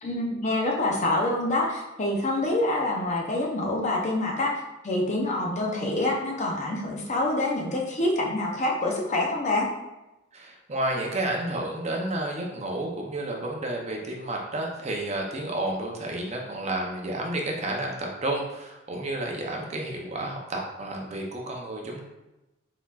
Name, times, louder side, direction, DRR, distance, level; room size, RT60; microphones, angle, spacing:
voice 1, 0.0-9.7, left 2 dB, 35° left, -1 dB, 0.6 m, -26 dB
voice 2, 10.3-22.0, right 1 dB, 35° right, 0 dB, 0.6 m, -31 dB
4.2 x 4.1 x 2.4 m, 0.99 s
head